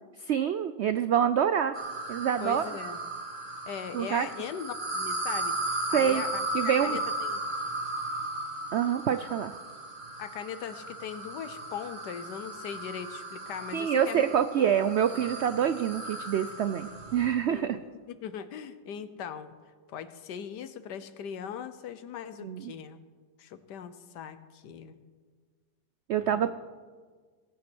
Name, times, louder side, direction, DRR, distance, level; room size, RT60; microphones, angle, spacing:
voice 1, 0.2-1.8 2.1-2.6 3.9-4.3 5.9-6.2 6.5-7.0 8.7-9.6 13.7-17.8 22.4-22.7 26.1-26.5, right 9 dB, 90° right, 11 dB, 0.5 m, -26 dB
sound 1, 1.7-17.4, right 1 dB, 30° right, 1.8 m, -36 dB
voice 2, 2.4-3.0 3.7-7.4 10.2-14.3 14.6-14.7 17.5-19.5 19.9-23.0 23.4-25.0 26.2-26.5, left 8 dB, 90° left, 12 dB, 1.5 m, -40 dB
18.5 x 8.6 x 6.2 m, 1.5 s
omnidirectional pair, 1.8 m